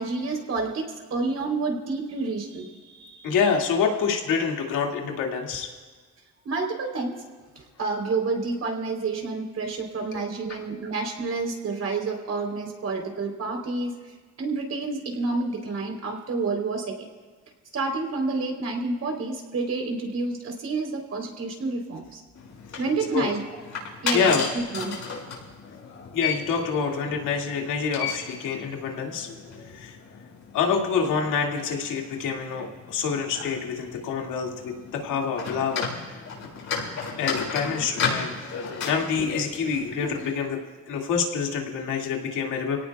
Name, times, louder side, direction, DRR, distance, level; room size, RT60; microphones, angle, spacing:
voice 1, 0.0-3.3 6.5-7.2 7.6-13.9 14.4-17.1 17.7-22.2 22.8-23.4 24.0-25.0, right 3 dB, 55° right, 2 dB, 3.6 m, -29 dB
voice 2, 3.2-5.7 10.1-10.2 10.5-10.6 22.7-22.8 23.1-23.3 24.1-24.5 26.1-29.3 29.7-30.0 30.5-35.9 37.2-38.6 38.8-40.6 40.9-42.9, left 6 dB, 85° left, 1 dB, 2.2 m, -27 dB
sound 1, 22.3-40.3, left 5 dB, 70° left, 5.6 m, -35 dB
26.0 x 18.0 x 2.3 m, 1.5 s
cardioid pair, 90°, 30 cm